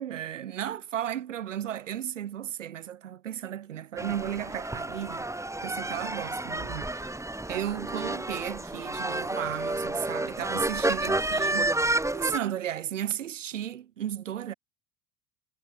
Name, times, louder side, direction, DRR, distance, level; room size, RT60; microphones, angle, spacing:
voice 1, 0.0-5.2 5.6-7.2 7.5-11.8 12.1-14.5, right 10 dB, 80° right, 3.1 m, -34 dB
sound 1, 4.0-12.4, right 2 dB, 10° right, 5.0 m, -30 dB
hypercardioid pair, 70°, 37 cm